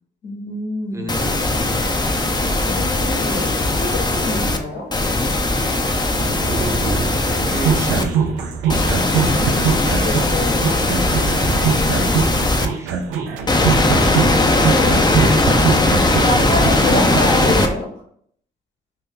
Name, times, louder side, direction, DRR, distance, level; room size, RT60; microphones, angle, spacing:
voice 1, 0.2-1.2 2.3-4.9 9.2-10.8 14.2-15.7 16.2-17.9, left 2 dB, 75° left, -2 dB, 1.2 m, -27 dB
voice 2, 0.9-1.5 6.4-8.3 12.4-13.3, right 1 dB, 15° right, 4 dB, 0.8 m, -34 dB
sound 1, 1.1-4.6 4.9-8.0 8.7-12.7 13.5-17.7, left 2 dB, 20° left, 0.6 m, -18 dB
Thunder, 4.0-8.8, right 3 dB, 50° right, 0.9 m, -32 dB
sound 2, 7.3-17.6, right 7 dB, 90° right, 0.5 m, -22 dB
2.8 x 2.7 x 3.6 m, 0.64 s
supercardioid pair, 60°, 19 cm